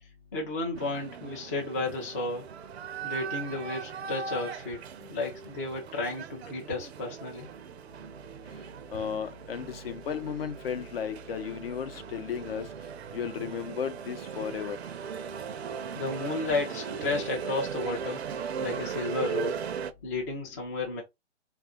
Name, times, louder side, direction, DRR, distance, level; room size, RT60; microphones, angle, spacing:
voice 1, 0.3-2.5 3.0-7.5 16.0-18.2 18.6-19.6 20.0-21.0, left 3 dB, 15° left, 0.4 m, -33 dB
sound 1, 0.7-19.9, right 7 dB, 60° right, 0.5 m, -38 dB
voice 2, 8.9-12.7 13.1-14.8, left 7 dB, 55° left, 0.7 m, -34 dB
3.4 x 2.4 x 3.7 m
hypercardioid pair, 140°, 36 cm